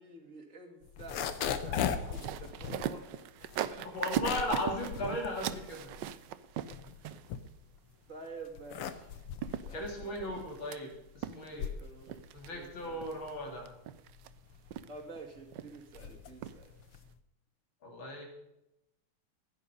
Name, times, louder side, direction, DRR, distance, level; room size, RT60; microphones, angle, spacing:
voice 1, 0.0-3.1 3.6-3.9 4.5-4.7 8.1-9.1 9.6-10.3 11.5-13.1 14.9-16.7, right 3 dB, 35° right, 1 dB, 2.6 m, -49 dB
sound 1, 0.8-6.1 6.5-7.9 8.4-17.2, left 8 dB, 90° left, 1.9 m, -39 dB
sound 2, 1.5-7.5 9.0-9.1 9.4-10.8 11.2-11.8 12.1-12.5 13.0-13.3 13.7-14.3 14.7-15.2 15.5-16.0 16.4-16.6 16.9-17.0, right 10 dB, 70° right, 1.1 m, -39 dB
voice 2, 3.8-5.9 9.7-11.7 12.3-13.7 17.8-18.3, left 1 dB, 65° left, 1 dB, 4.0 m, -37 dB
15.5 x 10.5 x 5.3 m, 0.86 s
omnidirectional pair, 2.4 m